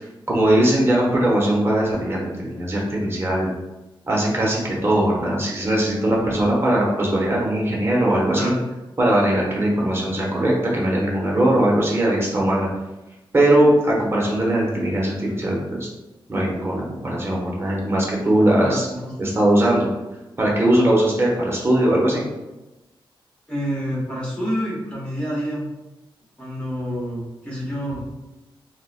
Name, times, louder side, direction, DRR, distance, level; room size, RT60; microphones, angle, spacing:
voice 1, 0.3-3.5 4.1-8.5 9.0-12.7 13.3-15.9 16.3-18.9 19.2-19.9 20.4-22.3, right 1 dB, 25° right, -4 dB, 0.7 m, -20 dB
voice 2, 18.6-19.1 23.5-25.7 26.4-28.0, equal, 10° left, -7 dB, 1.1 m, -28 dB
3.8 x 2.1 x 2.4 m, 1.0 s
wide cardioid pair, 130°, 9 cm